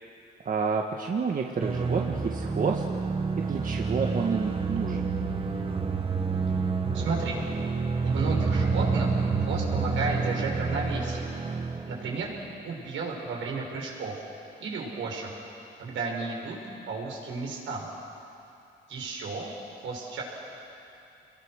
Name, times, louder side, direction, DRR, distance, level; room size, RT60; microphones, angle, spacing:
voice 1, 0.5-2.8 3.4-5.1, right 5 dB, 45° right, 1 dB, 1.7 m, -29 dB
sound 1, 1.6-12.4, right 4 dB, 25° right, 1.9 m, -28 dB
voice 2, 6.9-7.4 8.0-11.3 11.9-12.3 12.6-14.1 14.6-15.3 15.8-16.6 16.9-17.9 18.9-19.5 19.8-20.2, right 4 dB, 80° right, -1 dB, 6.1 m, -33 dB
29.0 x 21.5 x 6.6 m, 2.7 s
cardioid pair, 90°, 20 cm